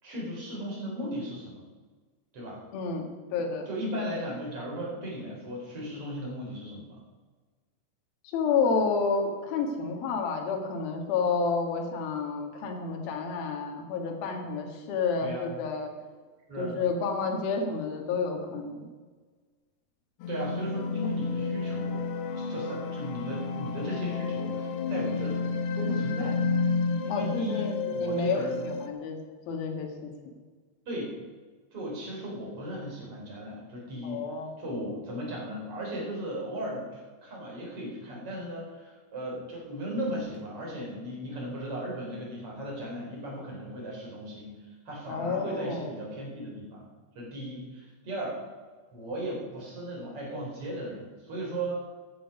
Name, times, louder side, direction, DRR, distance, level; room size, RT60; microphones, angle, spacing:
voice 1, 0.0-1.6 2.3-2.6 3.7-7.0 15.2-15.5 16.5-16.7 20.3-22.0 22.3-25.5 25.7-26.4 27.0-28.6 30.9-31.2 31.7-34.2 34.6-46.8 47.1-48.4 48.9-51.7, equal, 35° right, -3 dB, 4.8 m, -36 dB
voice 2, 2.7-3.7 8.2-15.9 16.6-18.9 27.1-29.2 29.5-30.1 34.0-34.5 45.1-45.9, left 4 dB, 65° left, 2 dB, 3.4 m, -30 dB
sound 1, 20.2-28.9, left 4 dB, 80° left, 2.8 m, -31 dB
14.5 x 10.0 x 5.4 m, 1.4 s
omnidirectional pair, 4.9 m